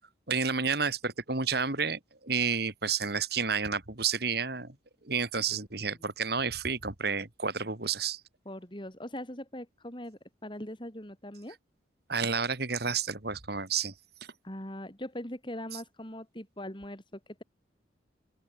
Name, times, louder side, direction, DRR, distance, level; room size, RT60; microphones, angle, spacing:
voice 1, 0.3-4.7 5.0-8.2 12.1-13.9, right 5 dB, 55° right, 2.4 m, -30 dB
voice 2, 8.4-11.6 14.4-17.4, left 1 dB, 25° left, 3.4 m, -41 dB
open air
head